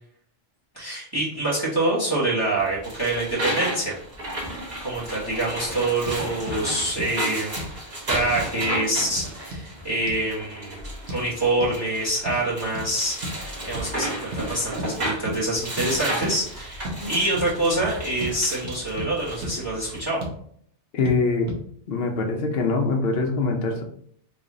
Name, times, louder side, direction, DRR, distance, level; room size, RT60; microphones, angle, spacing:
voice 1, 0.7-3.9 4.3-4.5 4.8-7.7 8.1-20.2, right 1 dB, 20° right, -5 dB, 0.9 m, -26 dB
sound 1, 2.6-20.0, right 1 dB, 40° right, 1.3 m, -33 dB
sound 2, 6.1-6.2 6.5-6.6 7.0-7.1 7.6-7.8 8.4-8.5 9.2-9.7 10.1-10.2 11.1-11.2 11.6-11.8 12.3-12.4 12.8-12.9 13.2-13.4 13.7-13.9 14.3-14.5 14.8-14.9 15.3-15.4 15.8-15.9 16.2-16.4 16.8-17.0 17.4-17.5 17.8-17.9 18.2-18.3 18.6-19.1 19.4-19.5 19.9-20.4 21.1-21.2 21.5-21.6, equal, 70° right, 1.1 m, -33 dB
voice 2, 20.9-21.5 21.9-23.8, left 3 dB, 65° left, 3 dB, 0.8 m, -23 dB
3.3 x 2.3 x 3.7 m, 0.63 s
omnidirectional pair, 1.2 m